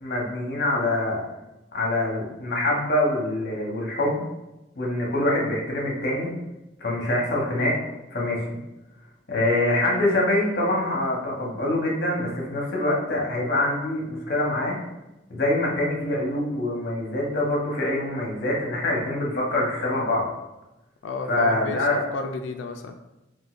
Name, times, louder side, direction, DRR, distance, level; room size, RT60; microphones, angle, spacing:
voice 1, 0.0-1.2 1.7-4.2 4.8-6.3 6.8-7.8 8.1-8.6 9.3-14.7 15.3-20.3 21.3-22.0, left 1 dB, 60° left, -2 dB, 0.9 m, -25 dB
voice 2, 21.0-22.9, left 3 dB, 85° left, 5 dB, 0.3 m, -32 dB
3.8 x 2.5 x 2.4 m, 0.98 s
head